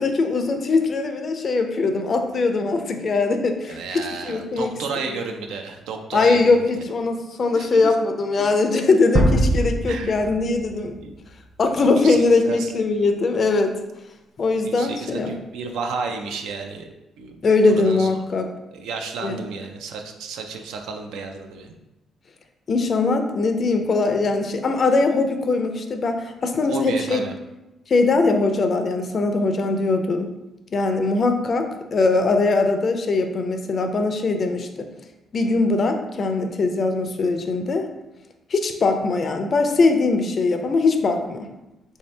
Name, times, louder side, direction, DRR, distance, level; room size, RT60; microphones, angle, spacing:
voice 1, 0.0-4.7 6.1-10.9 11.6-13.7 14.4-15.3 17.4-18.5 19.2-19.4 22.7-27.2 27.9-30.3 30.7-34.7 35.3-37.8 38.5-41.5, left 3 dB, 45° left, 6 dB, 0.4 m, -21 dB
voice 2, 3.7-6.6 7.5-7.9 9.9-10.2 11.0-11.1 12.0-12.7 14.6-16.9 17.2-17.5 17.8-18.1 18.7-21.7 26.7-27.3, right 4 dB, 90° right, 4 dB, 0.4 m, -32 dB
sound 1, 9.1-12.1, right 1 dB, 40° right, 0.7 m, -23 dB
3.4 x 2.7 x 3.2 m, 0.98 s
cardioid pair, 90°, 0 cm